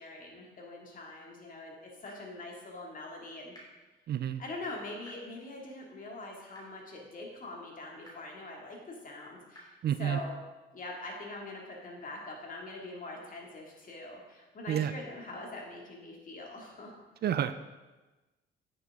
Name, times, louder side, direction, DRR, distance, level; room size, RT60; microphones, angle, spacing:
voice 1, 0.0-3.5 4.4-9.7 10.0-10.4 10.7-16.9, left 2 dB, 45° left, -1 dB, 2.1 m, -43 dB
sound 1, 2.0-2.1 3.5-3.6 5.0-5.1 6.5-6.6 8.0-8.1 9.5-9.6 11.0-11.1, equal, 20° left, 3.0 m, -50 dB
voice 2, 4.1-4.4 9.8-10.2 14.7-14.9 17.2-17.7, right 10 dB, 55° right, 11 dB, 0.4 m, -29 dB
9.1 x 6.6 x 3.6 m, 1.2 s
cardioid pair, 90°, 20 cm